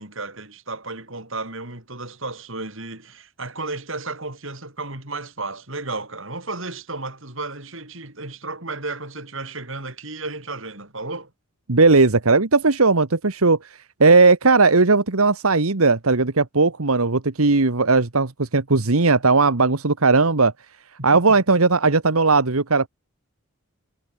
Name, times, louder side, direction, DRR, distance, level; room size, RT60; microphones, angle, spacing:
voice 1, 0.0-11.3 21.3-21.4, right 3 dB, 65° right, 7.0 m, -33 dB
voice 2, 11.7-20.5 21.0-22.9, right 3 dB, 80° right, 1.4 m, -17 dB
head